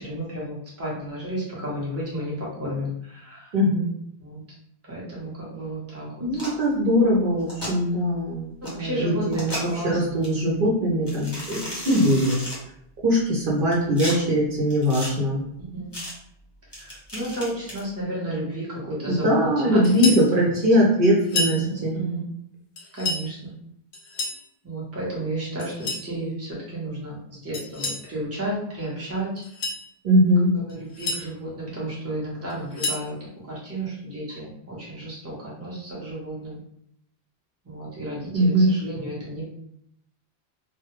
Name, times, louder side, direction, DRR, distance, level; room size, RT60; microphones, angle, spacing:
voice 1, 0.0-3.5 4.2-4.4 4.9-6.2 8.7-10.2 15.7-15.9 16.8-20.5 21.4-22.2 22.9-23.5 24.6-29.3 30.7-33.2 33.5-36.6 37.6-39.5, right 1 dB, 15° right, -6 dB, 0.7 m, -32 dB
voice 2, 3.5-3.9 6.2-12.4 13.0-15.4 19.1-22.1 30.0-30.5 38.3-38.7, equal, 60° right, -4 dB, 0.8 m, -21 dB
sound 1, 6.3-6.6 7.4-7.7 8.6-8.7 9.3-9.8 10.2-10.3 11.1-12.6 13.4-14.1 14.7-15.1 15.9-16.1 16.7-17.8, left 1 dB, 20° left, 0.8 m, -34 dB
sound 2, 19.8-20.3 21.2-21.6 22.8-23.3 23.9-24.4 25.6-26.1 27.5-28.1 29.4-29.8 30.7-31.2 32.5-33.1, left 2 dB, 65° left, 0.7 m, -29 dB
2.2 x 2.0 x 2.9 m, 0.73 s
omnidirectional pair, 1.1 m